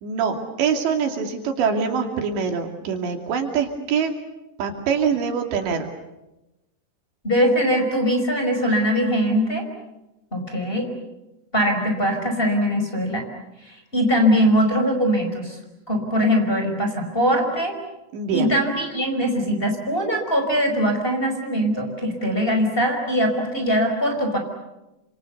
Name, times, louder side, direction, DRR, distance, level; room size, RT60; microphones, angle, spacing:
voice 1, 0.0-4.1 4.6-5.9 18.1-18.5, right 6 dB, 80° right, 4 dB, 4.9 m, -24 dB
voice 2, 7.2-9.7 10.3-10.9 11.5-13.2 13.7-15.6 15.9-17.8 18.3-24.4, equal, 10° left, 2 dB, 5.0 m, -21 dB
29.5 x 26.5 x 6.9 m, 0.96 s
omnidirectional pair, 5.0 m